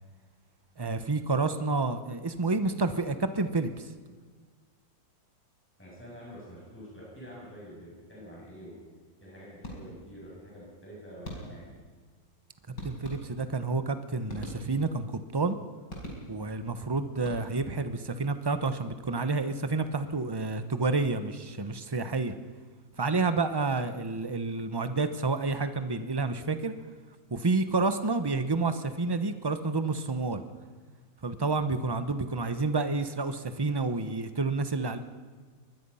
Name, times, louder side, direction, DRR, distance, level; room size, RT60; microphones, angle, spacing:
voice 1, 0.8-3.9 12.7-15.6 16.3-22.4 23.0-26.7 27.3-30.4 31.2-35.0, right 3 dB, 25° right, 10 dB, 0.5 m, -29 dB
voice 2, 5.8-8.8 9.2-11.7, equal, 5° left, -6 dB, 7.5 m, -47 dB
sound 1, 9.6-10.2 11.2-11.8 12.8-13.6 14.3-15.1 15.9-16.6 17.1-17.8, equal, 65° left, 5.2 m, -42 dB
23.0 x 20.5 x 5.6 m, 1.5 s
omnidirectional pair, 2.1 m